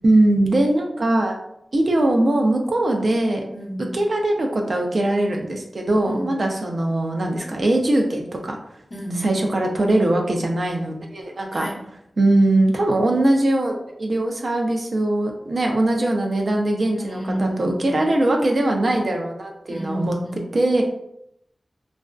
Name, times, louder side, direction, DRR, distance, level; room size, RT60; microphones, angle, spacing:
voice 1, 0.0-1.3 1.7-3.4 3.9-8.6 9.2-11.7 12.2-20.2 20.5-20.8, right 1 dB, 70° right, 1 dB, 0.4 m, -21 dB
voice 2, 3.5-4.0 6.1-6.4 8.9-9.4 11.5-11.9 16.9-18.0 19.7-20.6, right 1 dB, 50° left, -3 dB, 0.8 m, -31 dB
2.4 x 2.3 x 2.2 m, 0.76 s
wide cardioid pair, 55°, 0 cm